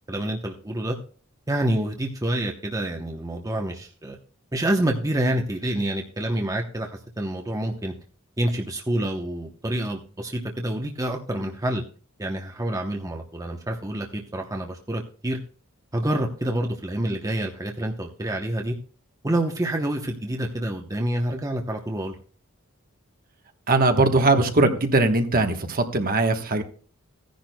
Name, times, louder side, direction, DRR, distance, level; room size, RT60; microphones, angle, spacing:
voice 1, 0.1-1.0 1.5-4.2 4.5-7.9 8.4-11.8 12.2-15.4 15.9-18.7 19.2-22.2, right 1 dB, 15° right, 2 dB, 0.8 m, -27 dB
voice 2, 23.7-26.6, right 2 dB, 40° right, 6 dB, 1.1 m, -20 dB
16.0 x 10.5 x 2.2 m, 0.41 s
head